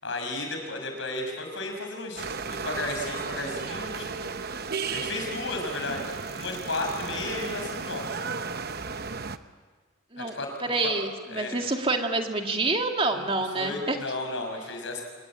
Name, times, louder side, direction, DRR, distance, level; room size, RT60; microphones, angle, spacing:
voice 1, 0.0-4.3 4.9-8.1 10.2-10.5 10.8-10.9 11.3-11.6 13.1-13.3 13.5-15.0, left 2 dB, 65° left, 3 dB, 6.3 m, -34 dB
sound 1, 2.2-9.4, right 5 dB, 50° right, 0.9 m, -34 dB
voice 2, 10.7-14.0, right 3 dB, 25° right, 3 dB, 2.2 m, -27 dB
26.0 x 21.0 x 8.9 m, 1.4 s
head